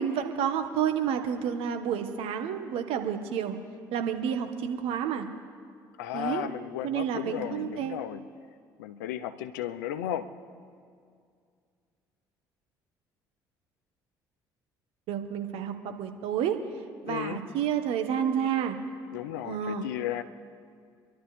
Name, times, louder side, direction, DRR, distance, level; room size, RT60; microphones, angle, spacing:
voice 1, 0.0-3.5 3.9-5.3 6.1-6.4 6.8-8.0 15.1-16.6 17.0-18.8 19.4-19.9, right 8 dB, 65° right, 6 dB, 1.5 m, -30 dB
voice 2, 6.0-8.2 8.8-10.3 17.1-17.4 19.1-20.2, left 11 dB, 80° left, 9 dB, 0.8 m, -34 dB
27.0 x 12.0 x 3.5 m, 2.2 s
hypercardioid pair, 60°, 10 cm